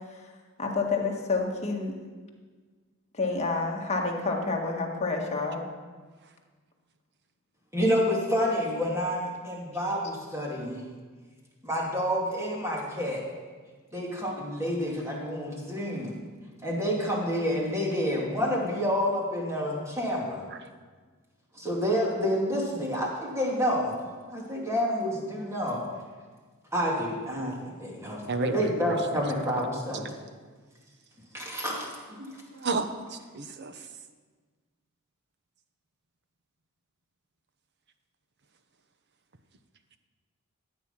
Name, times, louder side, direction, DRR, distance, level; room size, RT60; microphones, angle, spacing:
voice 1, 0.6-1.9 3.2-5.6, left 3 dB, 30° left, 0 dB, 1.7 m, -28 dB
voice 2, 7.7-10.8 11.6-13.2 13.9-16.1 16.6-20.5 21.5-23.9 24.3-25.8 26.7-30.1 31.3-32.4, equal, 15° right, -3 dB, 2.6 m, -29 dB
voice 3, 28.3-29.0 32.5-33.7, right 3 dB, 55° right, 9 dB, 0.9 m, -31 dB
14.0 x 9.1 x 5.7 m, 1.4 s
head